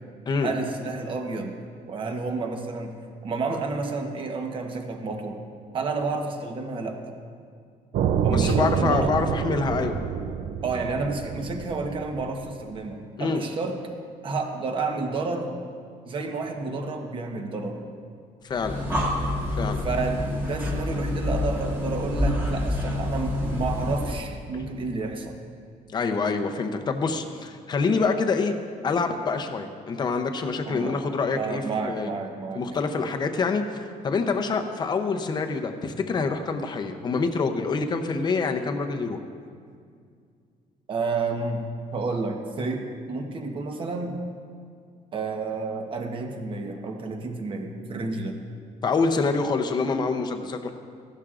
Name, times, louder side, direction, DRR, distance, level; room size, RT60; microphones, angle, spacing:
voice 1, 0.4-1.6 1.9-2.9 3.2-5.4 5.7-7.0 8.2-9.1 10.6-13.8 14.2-15.5 16.0-17.8 19.8-25.4 30.6-31.0 31.3-32.6 40.9-41.7 41.9-44.2 45.1-48.4, right 3 dB, 35° right, 3 dB, 1.0 m, -30 dB
sound 1, 7.9-12.8, right 7 dB, 60° right, 0.5 m, -27 dB
voice 2, 8.3-10.0 13.2-13.4 18.4-18.8 19.5-19.8 25.9-28.5 28.8-32.1 32.5-39.2 48.8-50.7, left 4 dB, 30° left, 6 dB, 0.7 m, -26 dB
Breathing, 18.5-24.3, left 1 dB, 15° right, 1.7 m, -27 dB
15.5 x 11.5 x 2.5 m, 2.2 s
cardioid pair, 165°, 14 cm